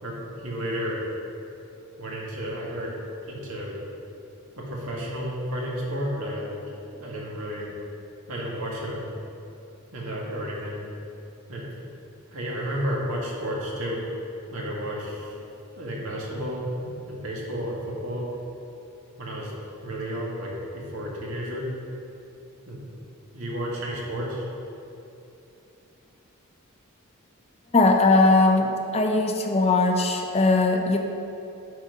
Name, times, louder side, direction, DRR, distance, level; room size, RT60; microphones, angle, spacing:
voice 1, 0.0-1.0 2.0-2.9 3.3-3.7 4.6-6.6 6.9-7.7 8.3-9.1 9.9-10.8 11.5-11.7 12.3-14.0 14.5-15.3 15.8-18.2 19.2-19.5 19.8-21.6 22.7-22.8 23.3-24.5, equal, 70° right, -4 dB, 1.9 m, -32 dB
voice 2, 27.7-31.0, left 2 dB, 30° left, 3 dB, 0.6 m, -20 dB
9.7 x 4.5 x 5.5 m, 2.9 s
head